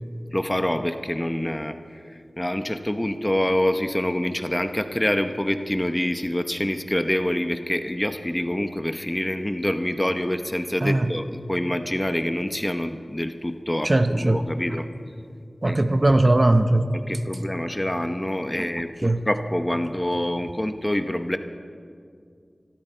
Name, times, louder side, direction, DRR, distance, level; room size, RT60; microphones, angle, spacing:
voice 1, 0.3-14.9 15.6-15.8 16.9-21.4, left 1 dB, 15° left, 8 dB, 0.9 m, -26 dB
voice 2, 13.8-14.4 15.6-16.9 18.6-18.7 19.0-19.2, right 1 dB, 40° right, 9 dB, 0.7 m, -19 dB
25.0 x 13.0 x 4.5 m, 2.3 s
wide cardioid pair, 60°, 0 cm